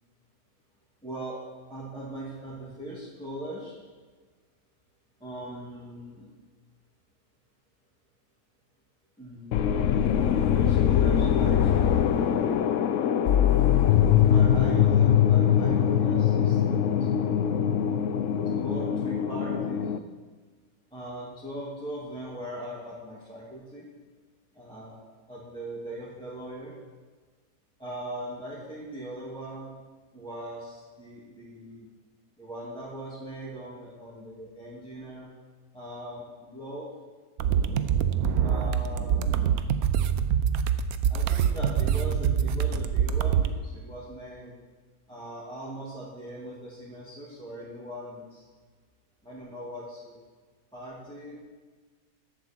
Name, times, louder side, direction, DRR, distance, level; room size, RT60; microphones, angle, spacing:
voice 1, 1.0-1.4 1.7-3.8 5.2-6.3 9.2-12.6 14.3-17.8 18.4-19.9 20.9-23.9 24.5-25.0 25.3-26.7 27.8-29.7 30.1-31.9 32.4-35.3 35.7-36.9 38.4-39.6 41.1-44.5 45.1-48.4 49.2-50.2 50.7-51.4, right 1 dB, 5° left, -9 dB, 2.6 m, -40 dB
sound 1, 9.5-20.0, left 9 dB, 65° left, 0.8 m, -22 dB
sound 2, 37.4-43.5, right 8 dB, 75° right, 1.1 m, -25 dB
14.5 x 11.0 x 4.6 m, 1.4 s
omnidirectional pair, 1.6 m